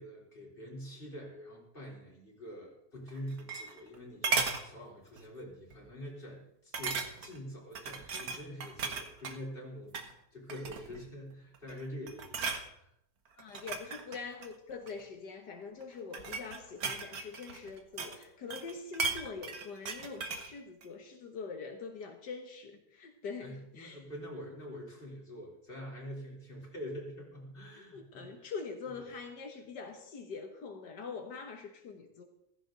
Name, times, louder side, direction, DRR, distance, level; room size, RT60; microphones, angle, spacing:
voice 1, 0.0-12.9 23.4-28.5 29.0-29.2, equal, 30° left, -3 dB, 4.1 m, -45 dB
sound 1, 3.1-4.0 4.2-4.7 5.2-5.4 5.7-5.8 6.7-7.4 7.8-9.4 9.8-10.1 10.5-11.0 11.5-11.8 12.1-12.7 13.4-15.0 15.8-18.2 18.5-20.5 20.8-20.9, right 4 dB, 65° right, 1.7 m, -36 dB
voice 2, 13.4-24.0 27.8-32.2, left 5 dB, 85° left, 3 dB, 1.9 m, -44 dB
15.5 x 14.5 x 4.0 m, 0.78 s
omnidirectional pair, 1.8 m